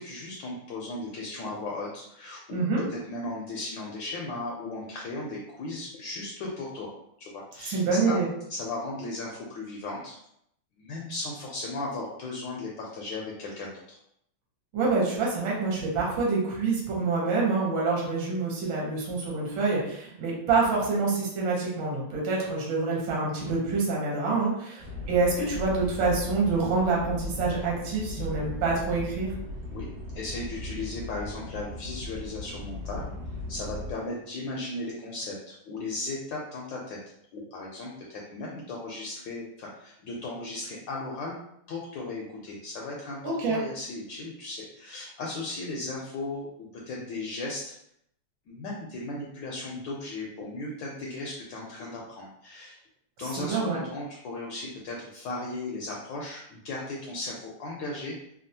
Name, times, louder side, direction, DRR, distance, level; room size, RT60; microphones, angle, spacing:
voice 1, 0.0-6.9 7.2-8.2 8.5-10.2 10.8-14.0 29.7-29.9 30.1-33.1 33.5-37.0 37.3-41.4 41.7-47.7 48.5-52.8 53.2-58.1, left 2 dB, 75° left, -2 dB, 1.1 m, -36 dB
voice 2, 2.5-2.8 7.6-8.3 14.7-29.3 43.2-43.6 53.5-53.8, right 3 dB, 70° right, -3 dB, 1.5 m, -26 dB
sound 1, 24.8-33.9, left 2 dB, 40° right, 1.0 m, -37 dB
3.5 x 2.3 x 2.7 m, 0.74 s
omnidirectional pair, 2.4 m